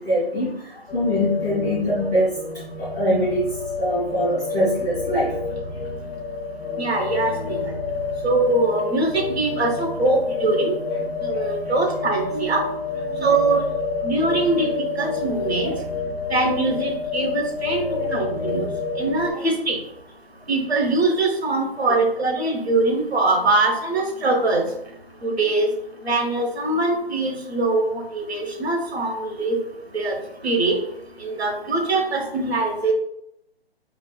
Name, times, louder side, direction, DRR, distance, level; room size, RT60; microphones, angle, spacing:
voice 1, 0.0-2.4 2.8-3.5 3.8-5.3 11.0-11.1 11.3-12.5 13.0-13.7 15.6-15.7 17.8-18.2 18.5-18.6 19.3-19.4 21.8-22.0, equal, 5° right, -12 dB, 0.4 m, -25 dB
sound 1, 0.9-19.3, left 4 dB, 90° left, 0.6 m, -29 dB
voice 2, 6.8-7.8 8.2-10.7 11.2-12.6 13.2-13.6 14.0-14.7 15.0-15.7 16.3-17.8 18.1-18.7 19.0-19.8 20.5-24.6 25.2-25.7 26.0-29.6 29.9-30.2 30.4-30.8 31.2-32.9, right 2 dB, 80° right, 1 dB, 1.1 m, -22 dB
4.7 x 2.1 x 2.4 m, 0.78 s
figure-of-eight pair, 140°, 31 cm